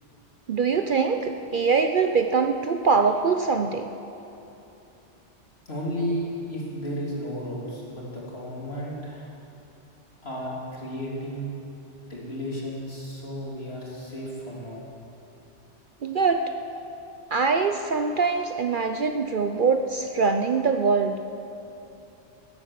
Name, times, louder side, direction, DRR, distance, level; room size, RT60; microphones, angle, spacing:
voice 1, 0.5-3.9 16.0-16.4 17.3-21.1, right 5 dB, 55° right, 6 dB, 0.7 m, -23 dB
voice 2, 5.7-9.3 10.2-11.5 12.1-14.8, equal, 55° left, -4 dB, 3.5 m, -33 dB
16.0 x 11.0 x 7.4 m, 2.9 s
omnidirectional pair, 1.2 m